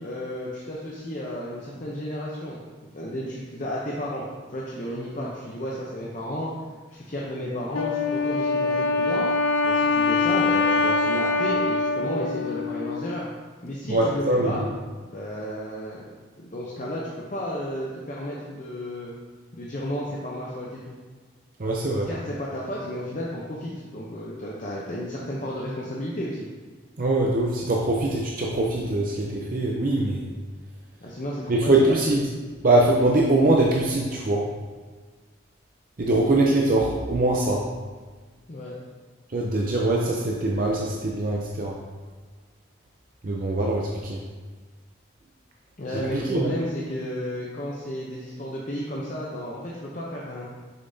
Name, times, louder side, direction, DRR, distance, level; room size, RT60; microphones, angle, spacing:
voice 1, 0.0-2.6 2.9-6.5 6.9-9.3 9.6-13.3 13.6-14.6 15.0-16.0 16.4-19.1 19.5-21.0 22.0-26.5 31.0-32.2 38.5-38.7 45.8-50.5, equal, 40° left, -5 dB, 0.6 m, -33 dB
Wind instrument woodwind instrument, 7.7-13.1, left 3 dB, 90° left, 0.4 m, -23 dB
voice 2, 13.9-14.7 21.6-22.1 27.0-30.2 31.5-32.3 32.6-34.5 36.0-37.6 39.3-41.7 43.2-44.2 46.1-46.5, right 2 dB, 45° right, -1 dB, 0.5 m, -22 dB
6.6 x 5.6 x 2.7 m, 1.4 s
head